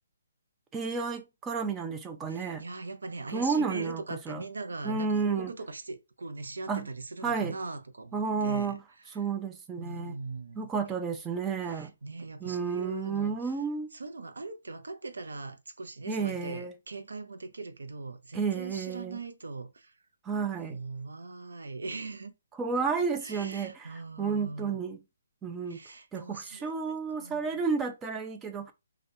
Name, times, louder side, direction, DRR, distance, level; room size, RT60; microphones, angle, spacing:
voice 1, 0.7-2.6 3.3-4.0 4.3-4.4 4.8-5.5 6.7-6.9 7.2-7.6 8.1-8.8 9.1-10.2 10.6-11.9 12.4-13.9 16.1-16.7 18.3-19.2 20.2-20.8 22.6-25.0 25.4-25.8 26.1-28.7, right 5 dB, 15° right, 0.5 m, -31 dB
voice 2, 2.3-8.1 8.4-8.8 9.8-10.7 11.6-13.6 13.9-20.0 20.7-22.3 23.2-24.8 25.7-27.5, right 3 dB, 85° right, 0.6 m, -40 dB
3.7 x 2.3 x 2.7 m
hypercardioid pair, 150°, 0 cm